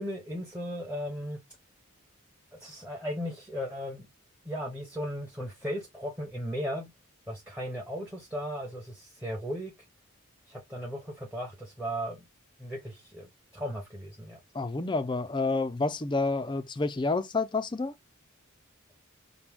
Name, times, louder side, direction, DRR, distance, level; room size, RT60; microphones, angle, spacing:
voice 1, 0.0-1.4 2.6-4.1 4.4-6.9 7.3-9.7 10.5-12.2 12.6-13.3 13.5-14.4, equal, 5° right, 0.9 m, -36 dB
voice 2, 14.5-17.9, left 3 dB, 20° left, 0.4 m, -29 dB
5.9 x 2.2 x 3.5 m
head